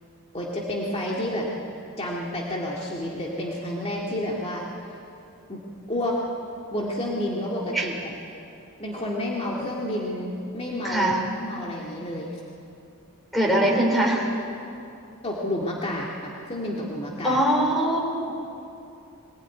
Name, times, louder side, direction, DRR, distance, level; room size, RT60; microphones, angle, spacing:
voice 1, 0.3-1.5 2.0-4.6 5.5-5.6 5.9-6.2 6.7-8.1 8.8-11.1 11.4-12.4 15.2-17.4, left 1 dB, 25° left, -3 dB, 2.1 m, -30 dB
voice 2, 10.8-11.2 13.3-14.3 17.2-18.4, right 1 dB, ahead, -1 dB, 4.1 m, -22 dB
22.5 x 17.5 x 9.4 m, 2.7 s
head